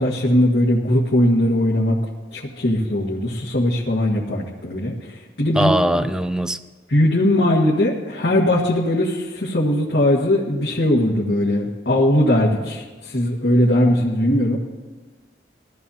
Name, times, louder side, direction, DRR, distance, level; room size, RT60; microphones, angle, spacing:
voice 1, 0.0-2.0 2.3-5.7 6.0-6.1 6.9-14.6, left 1 dB, 80° left, 1.7 m, -19 dB
voice 2, 5.6-6.6, right 1 dB, 5° right, 0.3 m, -20 dB
21.0 x 14.0 x 2.8 m
head